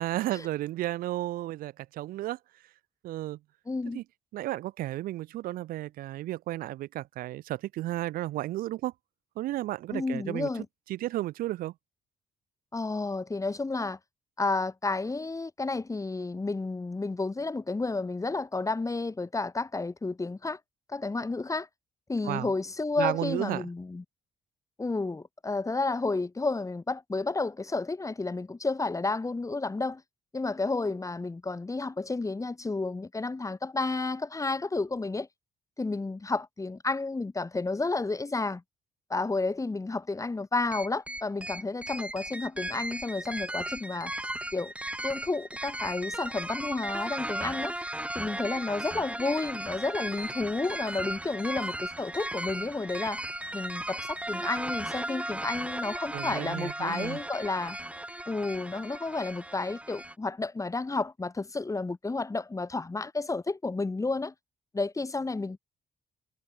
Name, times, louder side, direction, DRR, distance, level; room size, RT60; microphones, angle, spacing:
voice 1, 0.0-2.4 3.0-3.4 3.9-4.0 4.3-8.9 9.4-10.5 10.9-11.7 22.2-22.5 23.0-23.6 56.1-57.2, right 15 dB, 80° right, 0.8 m, -33 dB
voice 2, 3.7-4.0 9.9-10.7 12.7-14.0 14.4-20.6 20.9-21.7 22.1-24.0 24.8-30.0 30.3-35.3 35.8-38.6 39.1-44.1 44.5-44.7 45.0-47.7 48.1-53.2 53.5-57.8 58.3-64.3 64.7-65.6, left 3 dB, 20° left, 1.5 m, -31 dB
sound 1, 40.7-60.1, right 1 dB, 10° right, 2.7 m, -36 dB
supercardioid pair, 65°, 15 cm